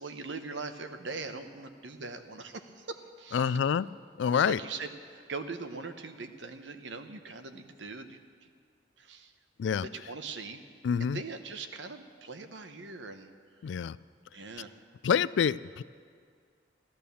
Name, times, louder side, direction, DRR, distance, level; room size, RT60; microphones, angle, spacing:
voice 1, 0.0-3.6 4.3-8.2 9.0-9.3 9.9-10.6 11.0-13.3 14.3-14.7, right 4 dB, 85° right, 8 dB, 1.0 m, -41 dB
voice 2, 3.3-3.9 4.2-4.6 9.6-9.9 10.8-11.2 13.6-14.0 15.0-15.8, left 7 dB, 80° left, 19 dB, 0.3 m, -27 dB
13.0 x 12.0 x 7.0 m, 2.1 s
head